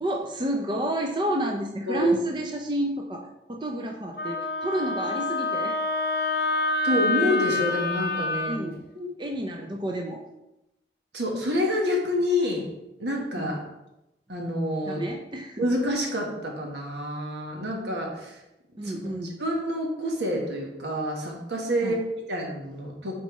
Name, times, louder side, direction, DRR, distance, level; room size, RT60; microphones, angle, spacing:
voice 1, 0.0-5.7 8.5-8.9 9.2-10.2 13.3-13.6 14.9-15.7 18.8-19.4 21.8-22.0, right 1 dB, 25° right, 2 dB, 0.5 m, -30 dB
Wind instrument woodwind instrument, 4.2-8.6, left 2 dB, 60° left, 0.7 m, -27 dB
voice 2, 6.8-8.6 8.9-9.1 11.1-12.7 13.0-13.6 14.3-15.0 15.6-18.4 18.8-19.1 19.4-23.2, left 1 dB, 80° right, 0 dB, 1.5 m, -28 dB
8.5 x 4.3 x 3.2 m, 0.92 s
head